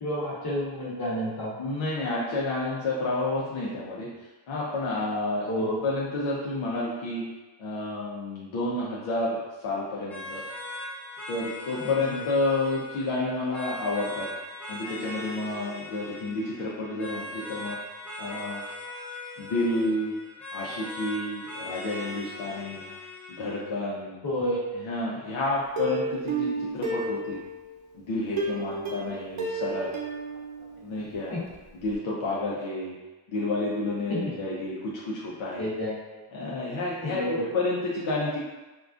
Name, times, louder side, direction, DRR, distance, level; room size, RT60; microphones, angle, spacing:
voice 1, 0.0-1.5 5.3-5.8 11.8-12.2 24.2-24.6 31.3-31.5 34.1-34.2 35.6-36.2 37.0-37.4, equal, 50° left, -6 dB, 1.0 m, -30 dB
voice 2, 1.6-4.1 4.5-5.5 5.8-7.2 7.6-10.4 11.3-14.3 14.7-17.8 18.2-18.6 19.4-20.1 20.5-22.9 23.4-24.2 24.8-27.4 27.9-29.9 30.8-31.3 31.8-32.9 33.3-35.7 36.3-37.2 37.5-38.4, left 2 dB, 80° left, -6 dB, 0.6 m, -30 dB
sound 1, 10.1-23.7, left 2 dB, 5° left, 0.4 m, -40 dB
Plucked string instrument, 25.8-27.7 28.4-31.2 31.5-31.6 31.9-32.0, right 3 dB, 85° right, 0.7 m, -32 dB
3.5 x 2.3 x 2.4 m, 1.1 s
wide cardioid pair, 140°, 47 cm